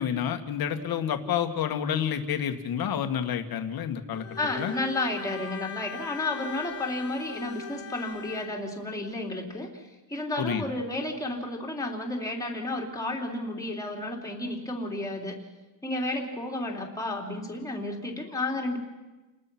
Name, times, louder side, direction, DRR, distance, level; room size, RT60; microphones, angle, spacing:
voice 1, 0.0-4.3 4.6-4.7 10.4-10.7, left 8 dB, 55° left, 7 dB, 1.9 m, -29 dB
Bowed string instrument, 4.1-8.6, left 7 dB, 35° left, 1.2 m, -41 dB
voice 2, 4.4-15.4 15.8-18.8, left 2 dB, 10° left, 0 dB, 3.0 m, -32 dB
29.5 x 20.0 x 6.1 m, 1.1 s
cardioid pair, 170°, 44 cm